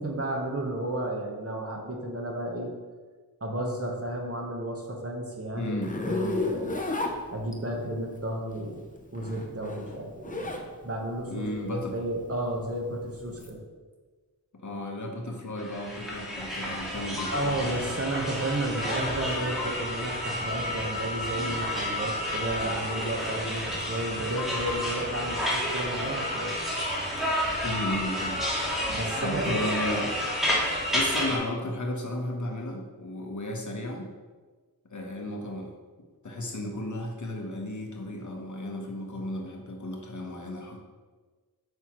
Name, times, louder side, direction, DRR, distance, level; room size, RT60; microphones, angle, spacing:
voice 1, 0.0-2.7 3.4-5.7 6.1-6.8 7.3-10.6 10.8-13.6 17.3-26.7 28.9-29.8, right 1 dB, 40° right, 0 dB, 1.3 m, -32 dB
voice 2, 5.6-5.9 11.3-12.0 14.5-17.8 27.6-28.5 29.2-30.1 30.9-34.1 34.9-35.7 36.2-40.8, left 1 dB, 50° left, 1 dB, 1.1 m, -34 dB
Zipper (clothing), 5.8-7.8 9.0-10.7 11.1-13.5, left 2 dB, 20° left, 0.7 m, -32 dB
sound 1, 15.6-31.4, equal, ahead, 2.0 m, -30 dB
sound 2, 17.2-17.4 19.6-19.7 22.0-22.1 24.4-24.9, left 5 dB, 85° left, 0.9 m, -36 dB
8.0 x 5.8 x 3.1 m, 1.4 s
wide cardioid pair, 100°, 37 cm